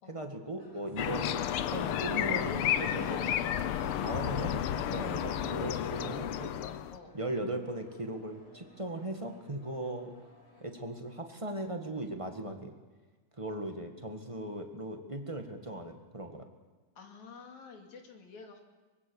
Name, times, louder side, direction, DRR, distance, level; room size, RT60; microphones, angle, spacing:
voice 1, 0.1-3.6 3.9-6.5 7.1-10.1 10.6-12.7 13.4-16.5, right 1 dB, 25° right, 4 dB, 0.6 m, -38 dB
sound 1, 0.6-10.7, left 2 dB, 40° left, 5.6 m, -58 dB
sound 2, 1.0-7.0, left 10 dB, 90° left, 1.2 m, -32 dB
voice 2, 17.0-18.6, left 4 dB, 65° left, 3 dB, 3.8 m, -50 dB
24.5 x 21.0 x 7.1 m, 1.3 s
omnidirectional pair, 3.7 m